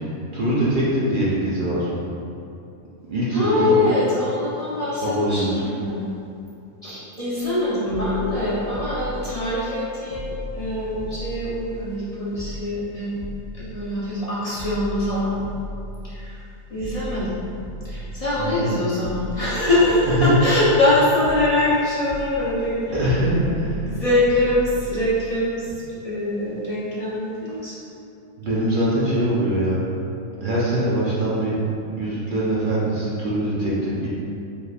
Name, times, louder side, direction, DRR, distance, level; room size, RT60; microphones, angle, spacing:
voice 1, 0.3-1.9 3.1-3.8 5.0-5.5 18.4-18.7 20.2-20.3 22.9-23.9 28.4-29.8 30.4-31.6 32.0-34.1, right 1 dB, 55° right, -8 dB, 0.6 m, -22 dB
voice 2, 3.3-6.1 6.8-13.2 13.5-15.3 16.0-16.4 16.7-17.3 17.8-23.1 23.4-23.6 23.9-25.7 26.0-27.7, left 1 dB, 40° left, -10 dB, 0.5 m, -23 dB
sound 1, 7.5-7.6 7.9-9.8 10.1-12.0 12.3-14.2 14.5-16.5 16.8-18.6 19.0-20.9 21.2-25.3 25.6-25.7, equal, 10° left, 1.0 m, -36 dB
4.8 x 3.3 x 2.4 m, 2.7 s
omnidirectional pair, 1.5 m